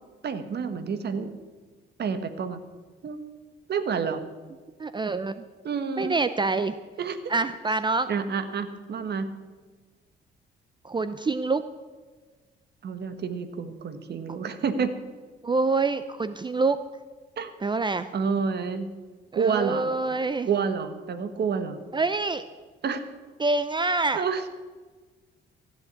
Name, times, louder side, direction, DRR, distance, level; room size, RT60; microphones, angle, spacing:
voice 1, 0.2-1.3 2.0-2.6 3.0-3.2 3.7-4.2 5.6-6.2 7.0-7.3 8.1-9.3 12.8-15.0 17.4-17.5 18.1-18.9 19.3-19.9 20.4-21.8 22.8-23.0 24.1-24.5, right 6 dB, 55° right, 10 dB, 1.5 m, -29 dB
voice 2, 4.8-5.4 6.0-6.8 7.3-8.1 10.8-11.6 15.4-16.8 17.6-18.1 19.3-20.5 21.9-22.4 23.4-24.2, right 3 dB, 25° right, 12 dB, 0.6 m, -26 dB
15.0 x 8.0 x 8.3 m, 1.4 s
cardioid pair, 90°, 20 cm